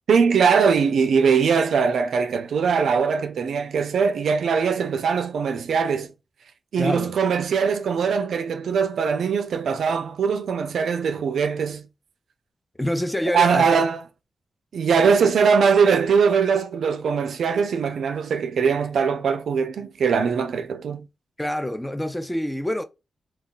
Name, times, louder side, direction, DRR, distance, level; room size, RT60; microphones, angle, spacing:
voice 1, 0.1-6.1 6.7-11.9 13.3-14.0 14.7-21.0, right 6 dB, 85° right, 0.4 m, -21 dB
voice 2, 6.8-7.2 12.8-13.7 21.4-22.8, left 1 dB, 5° left, 0.4 m, -26 dB
2.3 x 2.3 x 3.7 m
wide cardioid pair, 95°, 0 cm